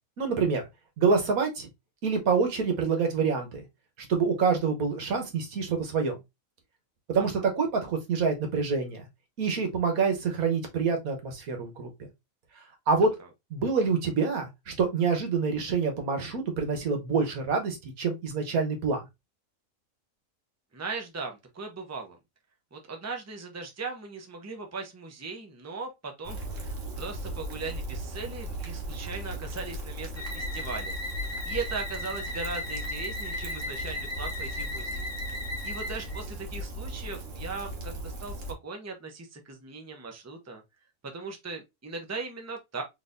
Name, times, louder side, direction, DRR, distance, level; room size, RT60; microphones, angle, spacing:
voice 1, 0.2-0.6 1.0-1.7 2.0-3.6 4.1-6.2 7.1-9.0 9.4-11.9 12.9-13.1 13.5-19.0, right 5 dB, 85° right, 1.6 m, -26 dB
voice 2, 20.7-22.2 22.7-31.0 31.2-35.0 35.6-40.6 41.0-42.8, right 4 dB, 15° right, 0.7 m, -38 dB
Rain, 26.2-38.5, right 1 dB, 65° right, 1.5 m, -37 dB
sound 1, 30.2-36.2, left 1 dB, 45° left, 1.2 m, -36 dB
4.0 x 3.3 x 2.6 m
omnidirectional pair, 1.5 m